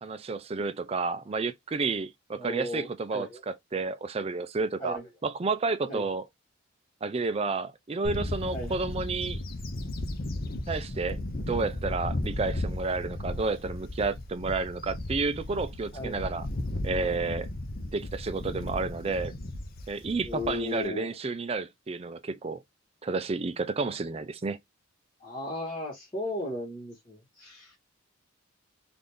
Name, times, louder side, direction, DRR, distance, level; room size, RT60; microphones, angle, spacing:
voice 1, 0.0-6.3 7.0-9.4 10.7-11.2 11.5-16.5 16.8-17.5 17.9-19.3 19.9-22.6 23.0-24.6, right 3 dB, 30° right, 0.4 m, -31 dB
voice 2, 2.4-3.4 4.8-5.1 5.9-6.1 8.5-8.8 15.9-16.2 20.2-21.1 25.2-27.8, left 2 dB, 20° left, 1.6 m, -36 dB
Bird / Wind, 8.0-20.8, left 1 dB, 45° left, 0.6 m, -35 dB
3.9 x 2.6 x 3.3 m
head